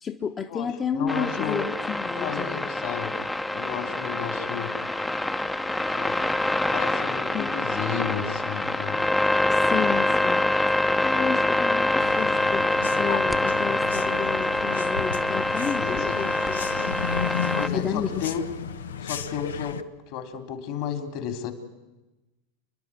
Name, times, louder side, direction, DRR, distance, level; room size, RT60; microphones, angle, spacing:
voice 1, 0.0-2.6 7.3-7.6 9.5-10.4 10.8-18.2, left 7 dB, 30° left, 3 dB, 1.2 m, -32 dB
voice 2, 0.9-1.7 2.2-3.2 3.5-4.8 5.9-6.2 6.7-9.0 15.8-16.2 17.6-18.4 19.0-21.5, left 8 dB, 60° left, 8 dB, 3.0 m, -33 dB
sound 1, 1.1-17.7, left 2 dB, 10° left, 0.9 m, -25 dB
sound 2, 12.0-19.8, left 7 dB, 85° left, 0.9 m, -34 dB
29.5 x 10.5 x 9.6 m, 1.1 s
hypercardioid pair, 95°, 0 cm